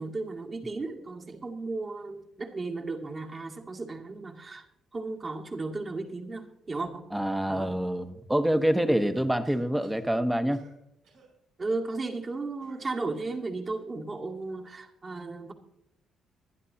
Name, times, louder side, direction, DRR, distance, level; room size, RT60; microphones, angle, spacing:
voice 1, 0.0-4.7 4.9-7.1 7.5-7.8 11.6-15.5, right 3 dB, 35° right, 1 dB, 2.1 m, -35 dB
voice 2, 7.1-10.6, right 1 dB, 5° right, 9 dB, 1.1 m, -26 dB
Cough, 8.9-10.1 10.5-10.8 11.0-11.3 12.6-13.5, right 4 dB, 85° right, 6.9 m, -58 dB
25.0 x 10.5 x 2.8 m, 0.78 s
cardioid pair, 90°, 0 cm